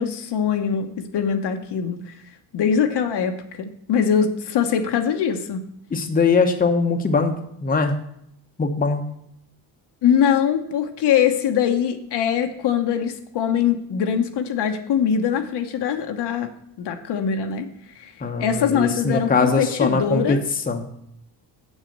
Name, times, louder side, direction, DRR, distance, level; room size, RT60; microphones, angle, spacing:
voice 1, 0.0-2.1 2.5-5.7 10.0-16.5 16.8-17.7 17.9-18.1 18.4-20.4, left 8 dB, 65° left, 5 dB, 1.1 m, -22 dB
voice 2, 5.9-7.3 7.6-7.9 8.6-9.0 18.2-20.4 20.7-20.9, left 4 dB, 20° left, 4 dB, 0.9 m, -21 dB
7.5 x 6.4 x 6.6 m, 0.74 s
cardioid pair, 120°, 44 cm